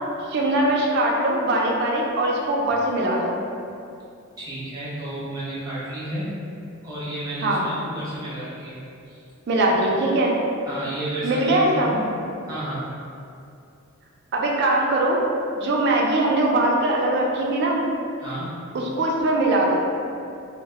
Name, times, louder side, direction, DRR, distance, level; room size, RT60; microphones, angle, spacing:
voice 1, 0.3-3.4 7.4-7.6 9.5-10.3 11.2-12.0 14.3-15.2 15.6-17.8 18.7-19.8, right 1 dB, 55° right, -2 dB, 0.4 m, -21 dB
voice 2, 4.4-6.3 6.8-8.8 9.0-9.2 9.9-10.0 10.7-12.0 12.5-12.8 18.2-18.5, right 1 dB, 20° right, -10 dB, 0.8 m, -31 dB
2.1 x 2.0 x 3.3 m, 2.5 s
head